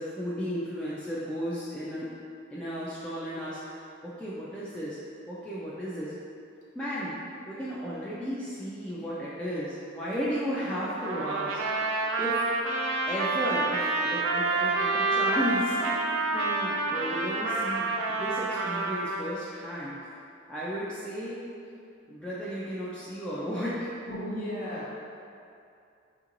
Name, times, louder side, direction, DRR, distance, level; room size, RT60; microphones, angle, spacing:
voice 1, 0.0-2.1 2.5-5.0 5.3-6.1 6.8-7.2 7.5-12.4 13.1-19.9 20.5-21.4 22.1-23.9, equal, 5° left, -10 dB, 0.3 m, -34 dB
Trumpet, 11.0-19.3, right 3 dB, 90° right, 0.4 m, -28 dB
voice 2, 24.1-24.9, equal, 40° left, -7 dB, 0.8 m, -34 dB
4.6 x 2.5 x 2.9 m, 2.5 s
head